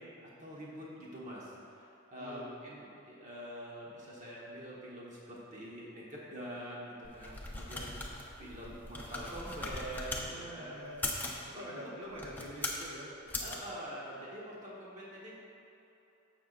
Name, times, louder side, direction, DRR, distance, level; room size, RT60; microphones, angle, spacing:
voice 1, 0.0-10.9 11.5-11.9 13.4-15.4, equal, 35° right, -6 dB, 1.3 m, -45 dB
voice 2, 2.1-2.5 7.9-8.2 10.2-13.8, equal, 70° right, -4 dB, 1.3 m, -47 dB
sound 1, 7.0-10.3 10.9-11.4 12.1-12.9 13.3-13.6, left 2 dB, 10° left, 0.7 m, -39 dB
14.0 x 5.6 x 2.5 m, 2.9 s
head